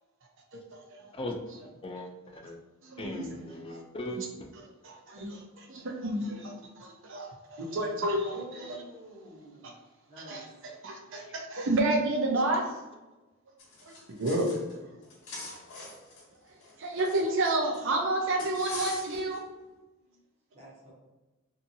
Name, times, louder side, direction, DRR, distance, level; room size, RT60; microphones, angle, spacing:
voice 1, 0.5-1.1 2.8-3.4 3.7-3.8 4.1-4.3 4.8-8.7 10.3-10.5 10.8-12.6 13.9-14.5 16.8-19.4, right 2 dB, 65° right, 1 dB, 0.6 m, -30 dB
voice 2, 1.8-2.6 3.0-4.2, left 1 dB, 25° left, 3 dB, 0.3 m, -38 dB
voice 3, 8.3-9.7 10.1-10.4 20.5-20.9, equal, 35° right, -6 dB, 0.9 m, -47 dB
sound 1, 13.6-14.8 15.0-17.8 18.4-19.4, left 2 dB, 80° left, 0.8 m, -43 dB
2.7 x 2.7 x 2.6 m, 1.1 s
head